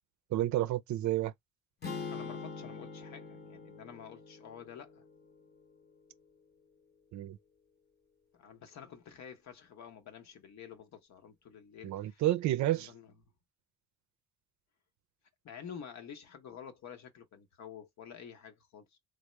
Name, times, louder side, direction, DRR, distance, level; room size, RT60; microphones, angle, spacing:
voice 1, 0.3-1.3 7.1-7.4 11.8-12.9, right 14 dB, 70° right, 0.5 m, -30 dB
sound 1, 1.8-6.0, left 4 dB, 35° left, 0.8 m, -44 dB
voice 2, 2.1-5.0 8.3-12.2 12.7-13.1 15.4-19.0, left 8 dB, 65° left, 0.9 m, -49 dB
3.5 x 2.0 x 3.1 m
cardioid pair, 90°, 30 cm